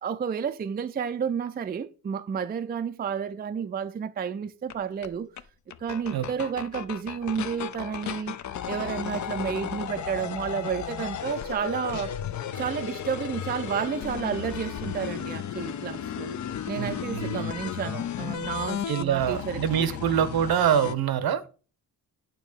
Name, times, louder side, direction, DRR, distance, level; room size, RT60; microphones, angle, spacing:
voice 1, 0.0-5.3 5.8-8.4 8.7-12.2 12.6-16.3 16.7-19.6 19.9-20.0, right 7 dB, 25° right, 0.4 m, -31 dB
sound 1, 4.7-4.8 5.0-5.1 5.4-5.5 5.7-20.9, left 8 dB, 50° left, 0.6 m, -34 dB
voice 2, 16.8-17.4 18.9-21.5, right 9 dB, 70° right, 0.9 m, -25 dB
9.0 x 3.1 x 6.4 m
cardioid pair, 90°, 38 cm